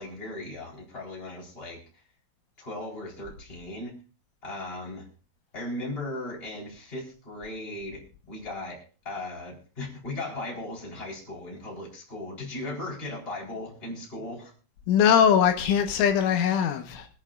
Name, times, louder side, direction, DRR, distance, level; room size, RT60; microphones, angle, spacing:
voice 1, 0.0-1.8 2.6-3.9 4.4-5.1 5.5-14.5, left 2 dB, 15° left, -2 dB, 3.4 m, -37 dB
voice 2, 14.9-17.1, left 8 dB, 80° left, 6 dB, 3.5 m, -21 dB
25.0 x 9.0 x 2.4 m, 0.38 s
omnidirectional pair, 5.6 m